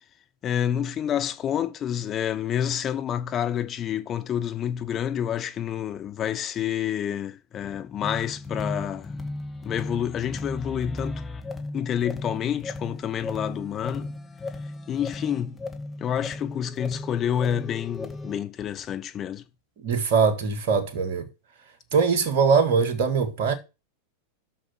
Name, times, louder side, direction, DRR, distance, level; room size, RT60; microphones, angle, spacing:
voice 1, 0.4-9.1 9.6-11.2 11.7-14.1 14.9-15.6 16.0-19.4, left 9 dB, 30° left, 0.7 m, -28 dB
sound 1, 8.0-18.4, left 2 dB, 10° left, 1.5 m, -36 dB
voice 2, 19.8-21.3 21.9-23.5, right 5 dB, 50° right, 1.7 m, -22 dB
7.2 x 6.5 x 6.0 m
figure-of-eight pair, 90°, 0 cm